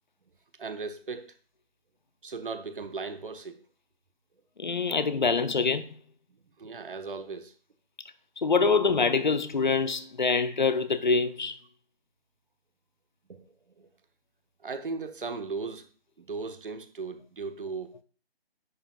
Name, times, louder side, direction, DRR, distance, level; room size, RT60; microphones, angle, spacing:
voice 1, 0.6-1.3 2.2-3.6 6.6-7.5 13.3-13.9 14.6-15.9 16.2-18.0, right 4 dB, 60° right, 1.1 m, -37 dB
voice 2, 4.6-5.9 8.4-11.6, left 4 dB, 50° left, 0.6 m, -25 dB
10.0 x 7.0 x 2.3 m
figure-of-eight pair, 150°, 31 cm